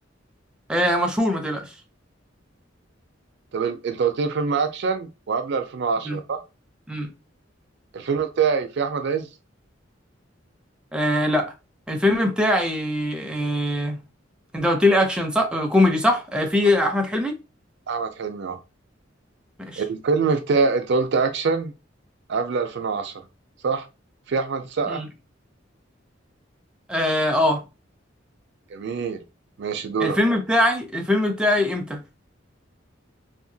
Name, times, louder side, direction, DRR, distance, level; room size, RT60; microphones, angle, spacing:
voice 1, 0.7-1.7 6.0-6.2 6.9-7.1 10.9-11.5 11.9-14.0 14.5-17.4 19.6-19.8 24.9-25.1 26.9-27.6 30.0-32.0, left 1 dB, 5° right, 0.4 m, -22 dB
voice 2, 3.5-6.4 7.9-9.3 17.9-18.6 19.8-21.7 22.3-23.1 23.6-23.9 24.3-25.0 28.7-29.2 29.6-30.2, right 5 dB, 65° right, 0.4 m, -24 dB
2.8 x 2.1 x 2.7 m
head